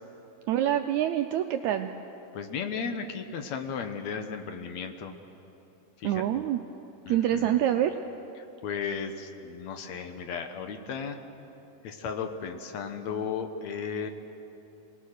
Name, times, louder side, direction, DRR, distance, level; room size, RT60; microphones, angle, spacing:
voice 1, 0.5-1.9 6.0-6.6 7.1-7.9, right 11 dB, 80° right, 6 dB, 1.7 m, -26 dB
voice 2, 2.3-5.1 6.0-6.5 7.1-7.6 8.4-11.2 11.8-14.1, left 6 dB, 65° left, 6 dB, 2.0 m, -35 dB
27.5 x 19.5 x 6.6 m, 3.0 s
omnidirectional pair, 3.9 m